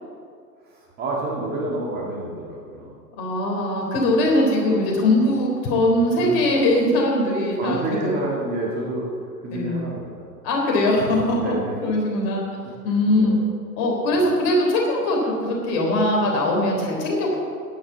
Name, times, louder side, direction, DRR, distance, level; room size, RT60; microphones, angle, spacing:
voice 1, 0.6-3.0 4.3-4.5 6.2-6.7 7.5-9.1 9.4-10.4 11.3-11.8 13.1-13.5 14.1-14.3, right 1 dB, 20° right, -3 dB, 2.2 m, -29 dB
voice 2, 3.2-8.1 9.5-9.8 10.4-11.5 11.8-12.4 12.8-13.4 13.8-17.4, left 1 dB, 30° left, -1 dB, 3.8 m, -21 dB
14.0 x 10.5 x 7.2 m, 2.1 s
figure-of-eight pair, 115°, 50 cm